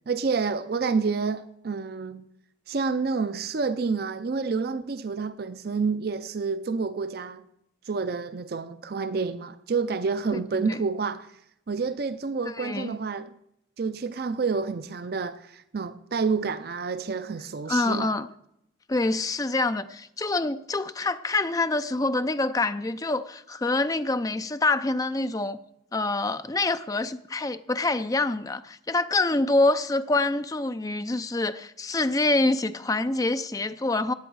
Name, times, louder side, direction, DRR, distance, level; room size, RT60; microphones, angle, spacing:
voice 1, 0.1-2.3 2.7-7.4 7.9-11.3 11.7-13.3 13.8-18.1, right 4 dB, 50° right, 0.4 m, -29 dB
voice 2, 12.5-12.9 17.7-18.3 18.9-25.6 25.9-34.1, left 2 dB, 20° left, 0.4 m, -26 dB
18.0 x 8.3 x 4.7 m
head